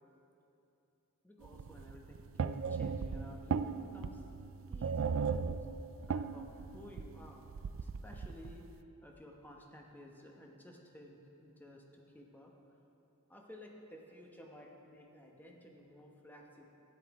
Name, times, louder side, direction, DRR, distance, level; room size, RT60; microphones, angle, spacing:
voice 1, 1.2-4.2 4.7-5.7 6.0-6.5 6.7-7.5 7.8-8.6 9.0-12.5 13.3-16.7, left 1 dB, 10° left, 0 dB, 1.0 m, -54 dB
sound 1, 1.4-8.6, right 5 dB, 60° right, 0.3 m, -37 dB
12.5 x 10.0 x 4.8 m, 2.8 s
head